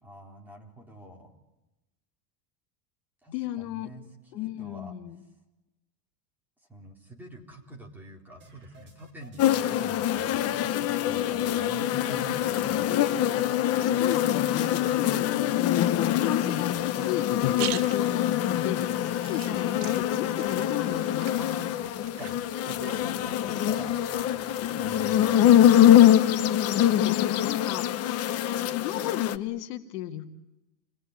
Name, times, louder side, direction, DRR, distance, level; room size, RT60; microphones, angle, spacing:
voice 1, 0.0-1.3 3.2-4.1 4.3-4.9 6.7-12.9 21.4-24.0 24.7-25.5, equal, 5° right, -1 dB, 4.0 m, -45 dB
voice 2, 3.3-3.9 4.3-5.2 13.3-21.5 24.6-26.0 27.0-27.9 28.7-30.3, left 13 dB, 70° left, 6 dB, 2.2 m, -34 dB
sound 1, 8.4-9.4 9.8-9.9 10.2-11.3 11.6-11.7 12.1-13.1 13.5-13.6 13.9-14.5 14.9-15.4 15.8-16.3 16.7-17.3 17.6-18.2 18.5-19.1 19.5-19.6 19.9-20.1 20.4-20.5 20.9-21.0 21.3-21.4 21.8-21.9 22.2-22.4 22.7-25.0, right 2 dB, 20° right, 6.3 m, -53 dB
sound 2, 9.4-29.4, left 11 dB, 30° left, 0.9 m, -24 dB
sound 3, 17.2-23.3, right 13 dB, 60° right, 1.6 m, -42 dB
28.5 x 20.5 x 9.8 m, 1.0 s
supercardioid pair, 155°, 49 cm